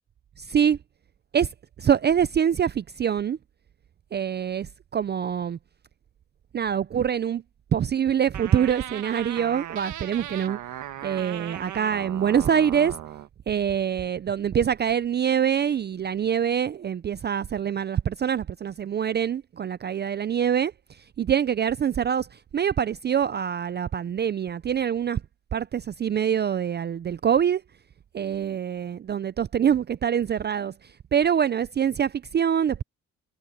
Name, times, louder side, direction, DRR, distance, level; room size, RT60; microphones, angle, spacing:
voice 1, 0.4-0.8 1.3-1.5 1.8-3.4 4.1-5.6 6.5-7.4 7.7-10.6 11.0-13.0 13.5-20.7 21.2-25.2 25.5-27.6 28.1-32.8, right 8 dB, 35° right, 0.5 m, -25 dB
sound 1, 8.3-13.3, right 12 dB, 75° right, 1.5 m, -37 dB
cardioid pair, 90°, 30 cm